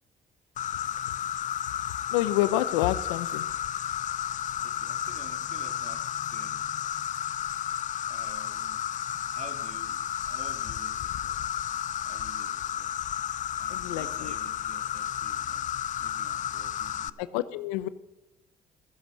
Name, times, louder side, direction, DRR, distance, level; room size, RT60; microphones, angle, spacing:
Insect, 0.6-17.1, left 10 dB, 50° left, 0.5 m, -32 dB
voice 1, 2.1-3.4 13.7-14.3 17.2-17.9, left 14 dB, 90° left, 16 dB, 0.7 m, -28 dB
voice 2, 4.6-6.7 8.0-8.9 9.3-11.4 12.0-13.0 13.6-15.7 16.0-17.4, right 6 dB, 45° right, 9 dB, 1.8 m, -50 dB
15.0 x 10.0 x 6.5 m, 0.94 s
supercardioid pair, 65°, 16 cm